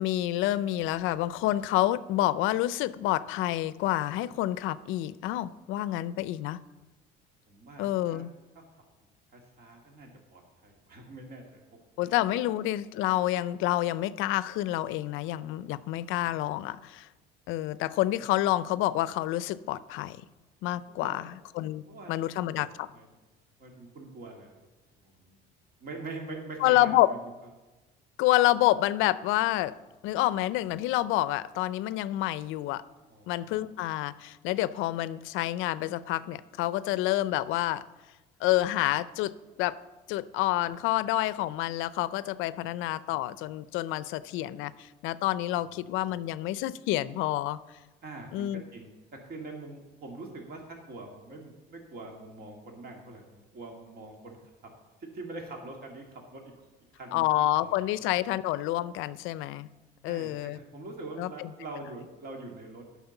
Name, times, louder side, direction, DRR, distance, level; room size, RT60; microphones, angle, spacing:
voice 1, 0.0-6.6 7.8-8.3 12.0-17.1 17.5-20.2 20.6-21.8 22.1-22.9 26.6-27.1 28.2-29.7 30.0-32.8 33.3-37.8 38.4-39.8 40.1-47.6 48.3-48.6 57.1-59.7 60.0-60.6 61.2-61.5, left 15 dB, 70° left, 17 dB, 0.5 m, -28 dB
voice 2, 7.5-8.2 8.6-8.7 9.3-11.6 16.2-16.3 20.7-21.3 21.7-22.3 22.6-22.7 22.9-23.1 23.6-24.5 25.0-25.4 25.8-27.3 33.1-33.7 45.6-45.8 48.0-48.9 49.3-54.4 55.0-56.5 56.9-58.1 60.1-62.8, right 2 dB, 50° right, 1 dB, 2.2 m, -44 dB
9.5 x 6.0 x 7.0 m, 1.1 s
supercardioid pair, 100°, 21 cm